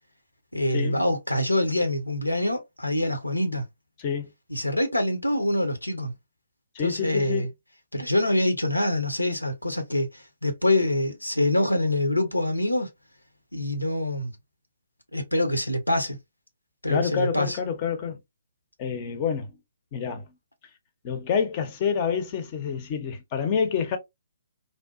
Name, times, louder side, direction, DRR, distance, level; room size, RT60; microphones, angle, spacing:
voice 1, 0.5-3.6 4.5-6.1 6.8-7.5 7.9-12.9 13.5-14.3 15.1-16.2 16.8-17.6, left 1 dB, 90° left, 0.7 m, -25 dB
voice 2, 4.0-4.3 6.7-7.5 16.9-18.2 18.8-19.5 19.9-20.2 21.0-24.0, left 7 dB, 30° left, 0.6 m, -27 dB
2.6 x 2.1 x 2.3 m
figure-of-eight pair, 135°, 0 cm